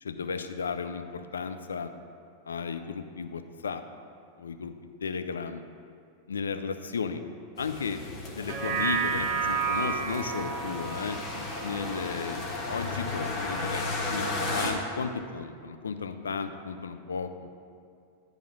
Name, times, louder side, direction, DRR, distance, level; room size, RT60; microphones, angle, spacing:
voice 1, 0.0-1.9 2.4-3.8 4.4-4.7 5.0-5.6 6.3-7.2 7.6-8.0 8.3-11.2 11.6-17.5, left 5 dB, 70° left, 8 dB, 0.4 m, -34 dB
sound 1, 7.6-14.7, left 2 dB, 30° left, 1.1 m, -34 dB
sound 2, 8.4-12.9 13.4-13.5, right 6 dB, 35° right, 0.7 m, -32 dB
10.0 x 3.5 x 6.0 m, 2.3 s
figure-of-eight pair, 90°, 0 cm